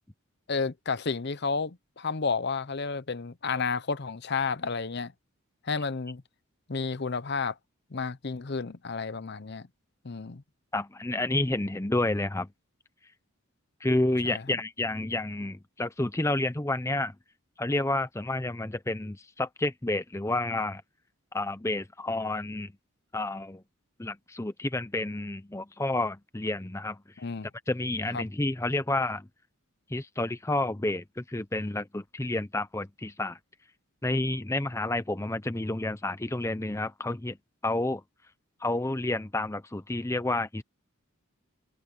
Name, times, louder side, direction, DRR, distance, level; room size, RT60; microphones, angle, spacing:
voice 1, 0.5-5.1 5.6-6.2 6.7-7.5 7.9-9.7 10.0-10.4 14.2-14.6 27.2-27.5 28.1-28.2, left 4 dB, 50° left, 0.7 m, -31 dB
voice 2, 10.7-12.5 13.8-17.1 17.6-20.8 21.3-22.7 23.1-23.6 24.0-27.0 27.7-29.3 29.9-33.4 34.0-37.4 37.6-38.0 38.6-40.6, left 2 dB, 15° left, 0.6 m, -30 dB
head